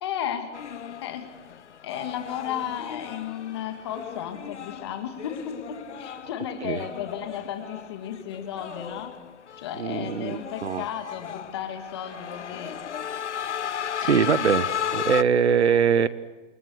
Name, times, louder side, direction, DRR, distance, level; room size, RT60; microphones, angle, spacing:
voice 1, 0.0-0.5 1.0-1.3 1.8-9.1 9.6-12.7 14.0-14.2, left 9 dB, 20° left, 7 dB, 2.4 m, -34 dB
sound 1, 0.5-15.2, left 8 dB, 70° left, 0.8 m, -35 dB
voice 2, 9.8-10.8 14.0-16.1, right 7 dB, 60° right, 16 dB, 1.4 m, -23 dB
30.0 x 28.0 x 6.6 m, 1.2 s
hypercardioid pair, 175°, 37 cm